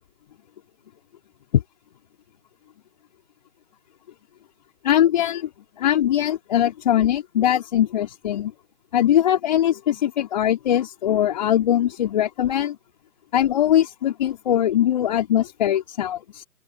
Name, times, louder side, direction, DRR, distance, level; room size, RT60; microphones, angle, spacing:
voice 1, 4.8-5.5 5.8-8.5 8.9-12.8 13.3-16.4, left 11 dB, 25° left, 4.9 m, -21 dB
open air
figure-of-eight pair, 160°, 50 cm